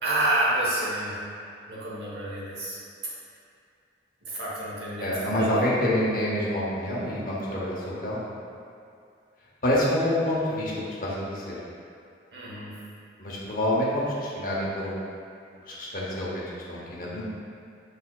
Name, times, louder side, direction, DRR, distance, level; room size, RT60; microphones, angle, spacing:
voice 1, 0.0-1.2 1.7-2.8 4.2-5.7 12.3-12.7, right 1 dB, 60° right, -8 dB, 1.2 m, -29 dB
voice 2, 5.0-8.3 9.6-11.6 13.2-15.0 15.7-17.2, left 1 dB, 45° left, -6 dB, 0.9 m, -27 dB
5.5 x 4.0 x 2.4 m, 2.4 s
head